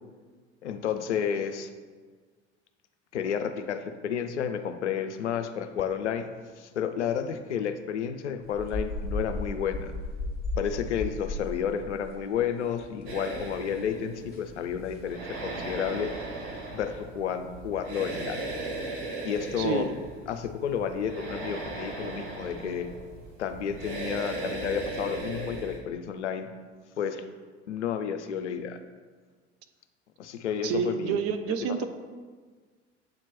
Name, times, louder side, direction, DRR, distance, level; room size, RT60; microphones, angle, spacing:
voice 1, 0.6-1.7 3.1-6.3 6.6-9.9 10.6-16.1 16.7-18.4 19.2-19.9 20.3-22.9 23.4-26.5 27.0-27.2 27.7-28.8 30.2-31.3 31.6-31.9, left 8 dB, 75° left, 8 dB, 0.5 m, -31 dB
sound 1, 8.5-13.1 13.3-13.5 13.9-14.0 14.3-14.5 14.9-15.2, left 2 dB, 30° left, 1.3 m, -35 dB
sound 2, 13.1-25.8, right 2 dB, 60° right, 1.0 m, -37 dB
voice 2, 19.6-19.9 30.6-31.9, right 6 dB, 40° right, 8 dB, 0.5 m, -28 dB
7.6 x 2.9 x 4.2 m, 1.5 s
figure-of-eight pair, 65°, 35 cm